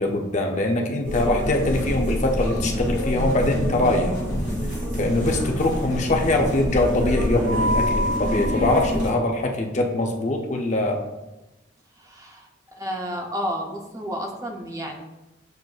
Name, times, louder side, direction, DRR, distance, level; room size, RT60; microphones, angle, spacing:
voice 1, 0.0-4.1 5.0-11.0, left 2 dB, 40° left, 2 dB, 0.5 m, -23 dB
sound 1, 1.0-9.1, equal, 40° right, 1.1 m, -26 dB
sound 2, 1.4-6.8, equal, 65° left, 1.1 m, -35 dB
voice 2, 12.0-12.5 12.7-15.0, equal, 15° right, 1 dB, 0.5 m, -31 dB
7.5 x 2.5 x 2.3 m, 1.0 s
head